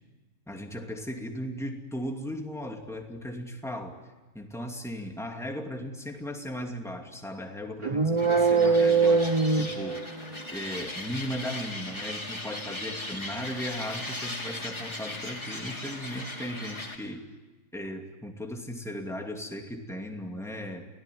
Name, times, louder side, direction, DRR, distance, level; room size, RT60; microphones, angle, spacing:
voice 1, 0.5-4.0 4.3-10.1 10.5-17.3 17.7-20.9, equal, ahead, 2 dB, 2.5 m, -37 dB
sound 1, 7.8-10.4, right 4 dB, 25° right, 0.8 m, -23 dB
sound 2, 8.2-17.0, left 2 dB, 20° left, 4.1 m, -38 dB
29.5 x 18.5 x 9.5 m, 1.2 s
omnidirectional pair, 1.6 m